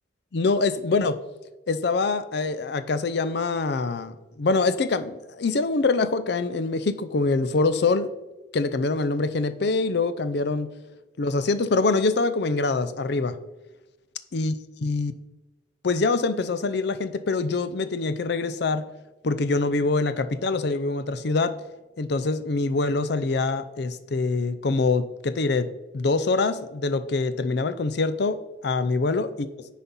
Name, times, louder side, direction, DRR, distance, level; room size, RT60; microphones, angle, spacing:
voice 1, 0.3-1.2 1.7-8.1 8.5-10.7 11.2-13.3 14.3-14.5 14.8-15.2 15.8-18.8 19.2-21.5 22.0-25.7 25.9-28.4 28.6-29.5, left 3 dB, 60° left, 13 dB, 0.5 m, -24 dB
9.7 x 4.1 x 5.4 m, 1.1 s
head